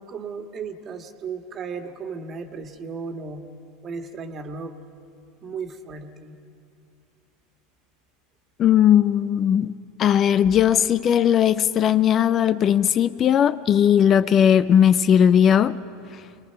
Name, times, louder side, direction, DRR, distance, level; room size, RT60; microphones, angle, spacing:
voice 1, 0.0-3.4 3.8-4.8 5.4-6.4, right 5 dB, 35° right, 1.7 m, -35 dB
voice 2, 8.6-15.8, left 9 dB, 35° left, 0.6 m, -18 dB
29.5 x 21.5 x 5.7 m
figure-of-eight pair, 80°, 0 cm